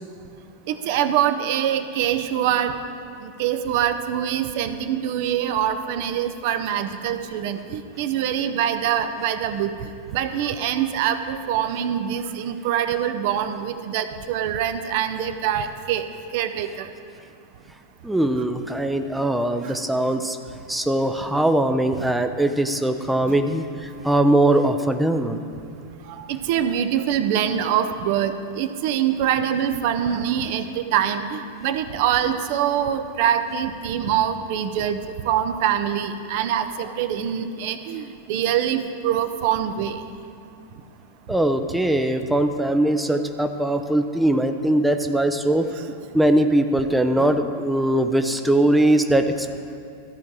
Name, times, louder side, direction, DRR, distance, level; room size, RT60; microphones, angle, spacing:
voice 1, 0.7-2.7 3.2-9.7 10.1-16.0 16.3-16.9 19.6-19.7 26.1-35.0 35.2-40.0, right 9 dB, 50° right, 9 dB, 0.6 m, -24 dB
voice 2, 18.0-20.4 20.7-25.4 41.3-45.7 46.1-49.5, right 1 dB, 5° right, 7 dB, 0.5 m, -21 dB
13.5 x 4.6 x 8.9 m, 2.5 s
figure-of-eight pair, 90°, 0 cm